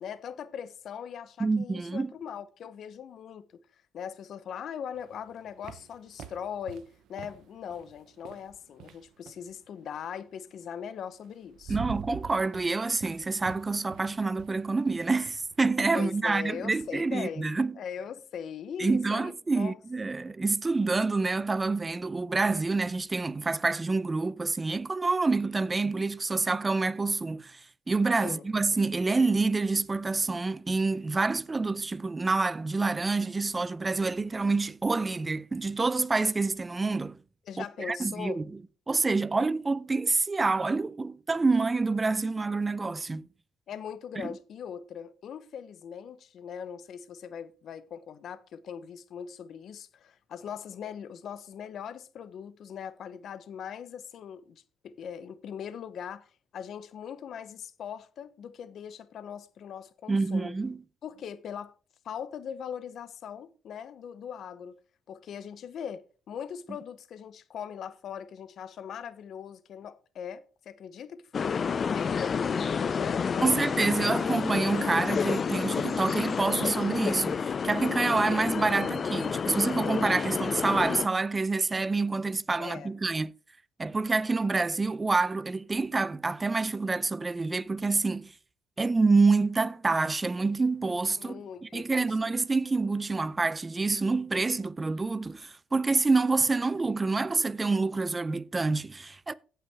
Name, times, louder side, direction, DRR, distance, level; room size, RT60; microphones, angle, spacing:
voice 1, 0.0-3.6 3.9-11.8 15.9-17.5 17.8-19.7 28.2-28.5 37.5-38.4 43.7-56.3 56.5-60.5 61.0-61.7 62.0-64.7 65.1-73.6 82.6-82.9 91.2-92.1, left 8 dB, 65° left, 0.7 m, -40 dB
voice 2, 1.4-2.1 11.7-17.7 18.8-27.6 27.9-37.2 37.6-38.5 38.9-43.3 44.2-44.3 60.1-60.8 73.4-83.3 83.8-88.3 88.8-99.3, right 3 dB, 25° right, 0.5 m, -27 dB
sound 1, 4.9-9.5 10.8-10.9 11.3-16.9, right 8 dB, 75° right, 0.8 m, -45 dB
sound 2, 71.3-81.1, left 6 dB, 45° left, 0.3 m, -29 dB
17.0 x 5.7 x 3.4 m
cardioid pair, 90°, 0 cm